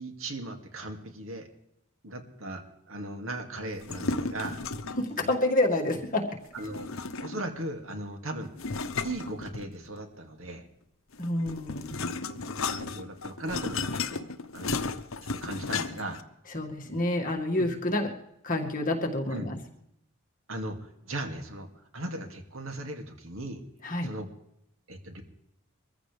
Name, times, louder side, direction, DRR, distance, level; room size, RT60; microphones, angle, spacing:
voice 1, 0.0-1.5 2.0-4.6 5.2-5.3 6.5-6.9 7.2-8.5 9.0-10.6 12.1-14.3 14.5-14.8 15.4-16.2 17.6-17.7 19.3-19.5 20.5-20.8 21.0-21.7 21.9-23.6 24.0-24.3 24.9-25.2, right 1 dB, 75° right, 4 dB, 2.5 m, -38 dB
sound 1, 3.7-5.1 6.6-7.6 8.6-10.0 11.1-16.2, left 4 dB, 75° left, 0.9 m, -34 dB
voice 2, 5.0-6.3 11.2-12.1 16.5-18.1 18.4-19.6 23.8-24.1, left 1 dB, 40° left, 1 dB, 2.1 m, -28 dB
23.5 x 14.5 x 3.4 m, 0.79 s
head